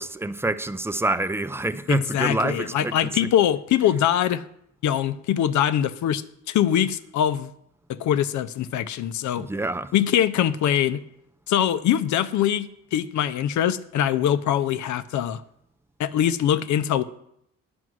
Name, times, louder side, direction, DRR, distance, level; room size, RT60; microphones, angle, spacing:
voice 1, 0.0-3.1 9.4-9.9, right 2 dB, 10° right, 0.4 m, -27 dB
voice 2, 1.9-4.4 4.8-7.5 7.9-9.5 9.9-11.0 11.5-15.4 16.0-17.0, left 10 dB, 70° left, 0.6 m, -23 dB
9.5 x 6.1 x 6.2 m
cardioid pair, 90°, 30 cm